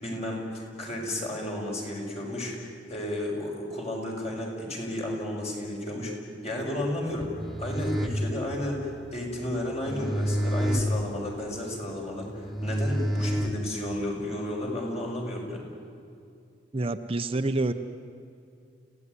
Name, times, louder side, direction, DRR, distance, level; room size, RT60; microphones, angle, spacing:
voice 1, 0.0-6.1 6.4-7.3 7.6-15.6, left 1 dB, 35° left, -1 dB, 5.8 m, -32 dB
sound 1, 7.1-14.1, equal, ahead, 1.8 m, -30 dB
voice 2, 16.7-17.7, right 2 dB, 30° right, 8 dB, 0.8 m, -27 dB
29.5 x 16.5 x 9.7 m, 2.4 s
head